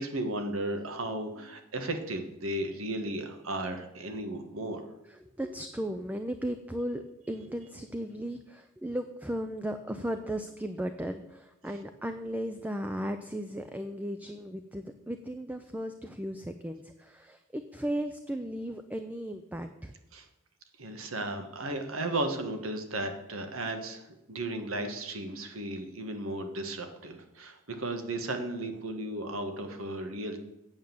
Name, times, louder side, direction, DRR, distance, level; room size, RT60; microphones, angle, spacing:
voice 1, 0.0-4.8 20.1-20.3 20.8-30.4, right 1 dB, 85° right, 6 dB, 1.6 m, -35 dB
voice 2, 5.1-19.9, equal, 10° right, 7 dB, 0.5 m, -36 dB
8.8 x 7.6 x 7.1 m, 0.90 s
head